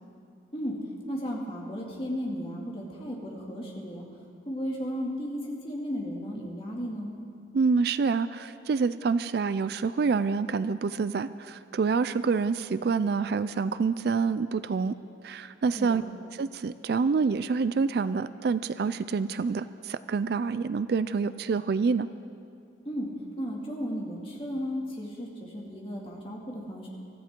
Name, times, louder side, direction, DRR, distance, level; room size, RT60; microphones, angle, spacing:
voice 1, 1.1-4.1 4.5-7.2 15.8-16.0 22.9-26.9, equal, 30° left, -2 dB, 2.4 m, -34 dB
voice 2, 7.5-15.0 15.2-16.0 16.4-22.1, right 5 dB, 55° right, 14 dB, 0.3 m, -27 dB
24.0 x 14.0 x 3.7 m, 2.6 s
head